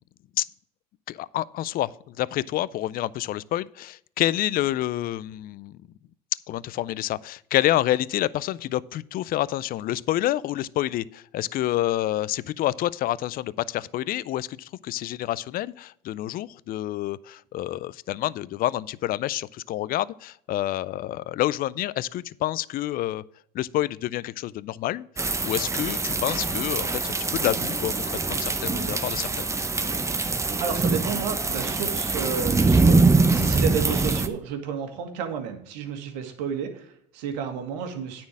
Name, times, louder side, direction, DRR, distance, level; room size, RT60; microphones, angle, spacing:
voice 1, 1.1-5.8 6.5-23.2 23.5-29.5, left 14 dB, 45° left, 20 dB, 0.4 m, -28 dB
sound 1, 25.2-34.3, right 3 dB, 15° right, 0.7 m, -23 dB
voice 2, 30.6-38.2, right 7 dB, 80° right, 6 dB, 1.7 m, -31 dB
9.5 x 4.4 x 7.3 m, 0.68 s
supercardioid pair, 90°, 21 cm